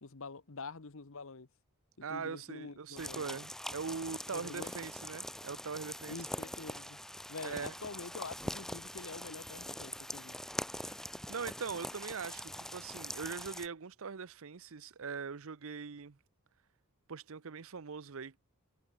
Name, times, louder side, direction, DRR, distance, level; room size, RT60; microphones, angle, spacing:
voice 1, 0.0-1.5 2.0-3.4 4.3-4.7 6.1-7.0 7.3-10.3, left 4 dB, 65° left, 1.1 m, -46 dB
voice 2, 2.0-6.2 7.4-7.7 10.8-11.0 11.3-16.2 17.1-18.4, right 5 dB, 65° right, 0.7 m, -41 dB
sound 1, 3.0-13.7, left 1 dB, ahead, 1.3 m, -43 dB
head